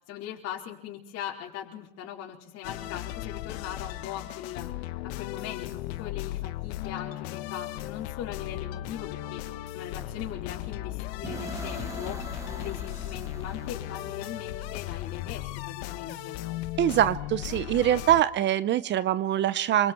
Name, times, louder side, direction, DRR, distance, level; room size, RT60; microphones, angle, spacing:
voice 1, 0.1-4.7 5.2-9.4 9.7-16.4, left 10 dB, 50° left, -2 dB, 4.5 m, -40 dB
sound 1, 2.6-18.2, left 15 dB, 80° left, 1.4 m, -36 dB
sound 2, 11.2-15.1, right 1 dB, 10° right, 2.8 m, -42 dB
voice 2, 16.8-19.9, right 11 dB, 35° right, 17 dB, 0.8 m, -24 dB
27.5 x 25.5 x 4.5 m, 0.79 s
supercardioid pair, 140°, 32 cm